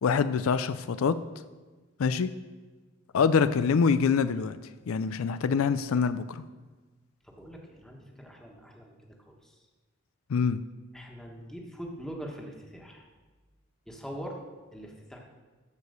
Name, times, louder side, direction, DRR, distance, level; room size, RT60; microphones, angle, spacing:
voice 1, 0.0-1.2 2.0-2.3 3.1-4.6 4.9-6.4 10.3-10.6, left 5 dB, 80° left, 13 dB, 0.4 m, -25 dB
voice 2, 7.2-9.6 10.9-13.0 13.9-14.4 14.7-15.2, equal, 5° left, 0 dB, 1.4 m, -43 dB
13.5 x 4.9 x 6.6 m, 1.3 s
head